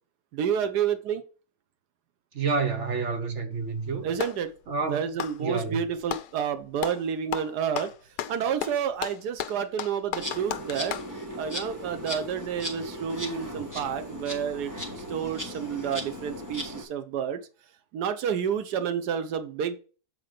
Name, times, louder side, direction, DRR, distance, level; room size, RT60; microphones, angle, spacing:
voice 1, 0.3-1.2 4.0-4.5 4.9-7.9 8.3-11.0 11.4-14.7 15.1-17.4 17.9-19.8, right 8 dB, 85° right, 1.4 m, -29 dB
voice 2, 2.3-4.2 4.7-5.0 5.4-5.8, right 4 dB, 55° right, 1.0 m, -29 dB
Clapping, 3.5-4.5 5.1-6.3 6.8-7.0 7.3-11.1, left 10 dB, 80° left, 1.2 m, -34 dB
Insect, 10.2-16.8, equal, 10° right, 1.5 m, -37 dB
7.9 x 4.4 x 5.0 m
omnidirectional pair, 1.7 m